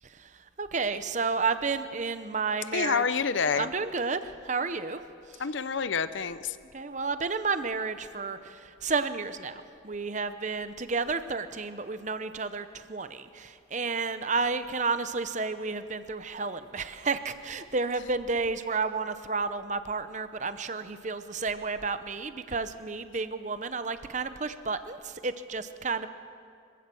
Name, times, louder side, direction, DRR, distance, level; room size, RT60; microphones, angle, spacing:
voice 1, 0.6-3.0 3.6-5.0 6.7-26.1, right 4 dB, 40° right, 11 dB, 0.8 m, -31 dB
voice 2, 2.7-3.7 5.4-6.6, left 5 dB, 70° left, 13 dB, 0.7 m, -28 dB
25.5 x 16.0 x 7.0 m, 2.4 s
head